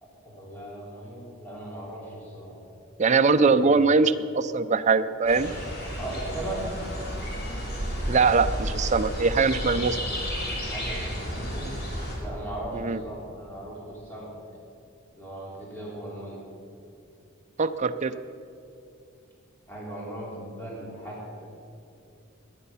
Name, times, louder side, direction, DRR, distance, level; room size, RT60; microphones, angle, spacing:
voice 1, 0.2-2.6 3.2-3.7 5.9-6.8 10.7-11.9 12.2-14.4 15.2-16.4 19.7-21.5, right 1 dB, 10° left, -5 dB, 3.5 m, -38 dB
voice 2, 3.0-5.5 8.1-10.0 12.7-13.0 17.6-18.1, right 4 dB, 35° right, 10 dB, 0.5 m, -22 dB
sound 1, 5.3-12.2, equal, 50° left, 4.0 m, -32 dB
18.5 x 10.5 x 5.7 m, 2.6 s
head